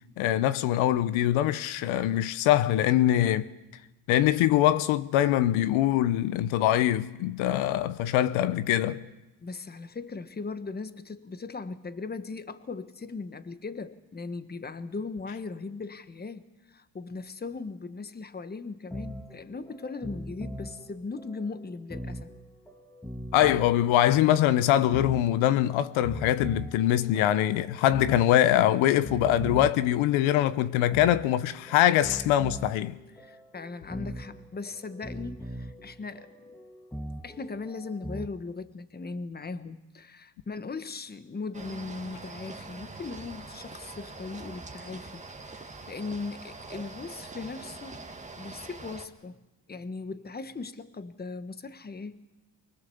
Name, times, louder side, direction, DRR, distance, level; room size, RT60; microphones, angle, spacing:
voice 1, 0.2-3.5 4.1-9.0 23.3-33.0, left 12 dB, 85° left, 0.9 m, -23 dB
voice 2, 9.4-22.3 33.2-36.3 37.2-48.0 48.4-49.4 49.7-52.2, left 4 dB, 20° left, 1.3 m, -38 dB
sound 1, 18.8-38.3, equal, 5° left, 1.7 m, -41 dB
sound 2, 41.5-49.1, right 3 dB, 15° right, 1.9 m, -44 dB
25.0 x 20.0 x 7.0 m
cardioid pair, 95°, 47 cm